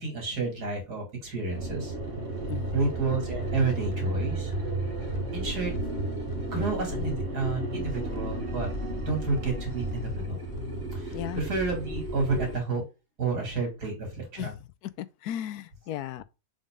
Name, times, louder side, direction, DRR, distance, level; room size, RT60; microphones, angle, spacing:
voice 1, 0.0-1.9 2.7-4.5 5.3-5.7 6.5-8.7 9.0-10.5 10.9-12.8 13.2-14.5, right 3 dB, 85° right, 3.3 m, -30 dB
sound 1, 1.5-12.6, right 2 dB, 45° right, 1.9 m, -33 dB
sound 2, 2.5-11.0, left 7 dB, 60° left, 0.5 m, -43 dB
voice 2, 11.1-11.4 14.4-14.5 14.8-16.2, left 12 dB, 80° left, 1.1 m, -35 dB
7.3 x 4.1 x 3.7 m
omnidirectional pair, 1.7 m